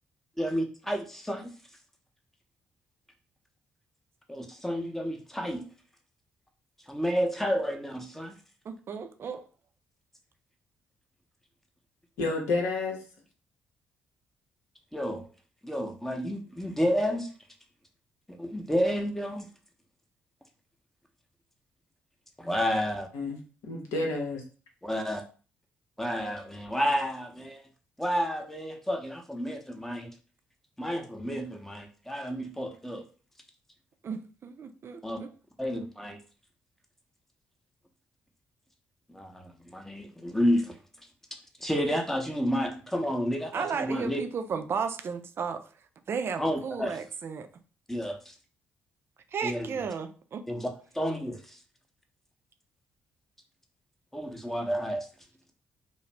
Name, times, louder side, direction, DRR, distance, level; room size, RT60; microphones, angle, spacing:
voice 1, 0.4-1.5 4.3-5.6 6.9-8.4 14.9-15.3 15.6-17.3 18.4-19.5 22.4-23.1 24.8-25.2 26.0-27.6 28.0-30.1 30.8-33.0 35.0-35.2 35.6-36.2 39.1-40.8 41.6-44.2 46.4-47.0 47.9-48.3 49.4-49.7 50.5-50.7 50.9-51.6 54.1-55.1, equal, 5° left, 0.7 m, -30 dB
voice 2, 8.7-9.4 34.0-35.3 43.5-45.7 46.1-47.5 49.3-50.4, right 6 dB, 50° right, 0.4 m, -34 dB
voice 3, 12.2-13.0 23.1-24.4, left 3 dB, 75° left, 0.7 m, -30 dB
2.4 x 2.0 x 3.1 m
hypercardioid pair, 45°, 5 cm